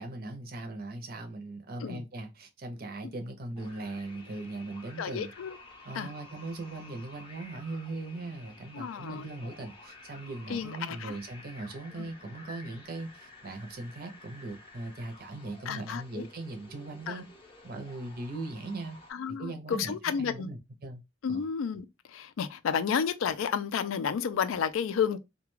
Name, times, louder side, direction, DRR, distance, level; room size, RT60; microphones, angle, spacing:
voice 1, 0.0-5.3 5.8-17.3 17.6-19.0 19.4-21.0 21.3-21.4, right 2 dB, 45° right, 0.6 m, -39 dB
sound 1, 3.6-19.1, left 2 dB, 25° left, 0.5 m, -52 dB
voice 2, 5.0-5.6 5.9-6.1 8.7-9.3 10.5-11.2 12.0-12.1 15.7-16.2 17.1-17.2 19.1-20.5 21.2-25.2, left 7 dB, 85° left, 0.3 m, -31 dB
2.3 x 2.2 x 3.0 m
head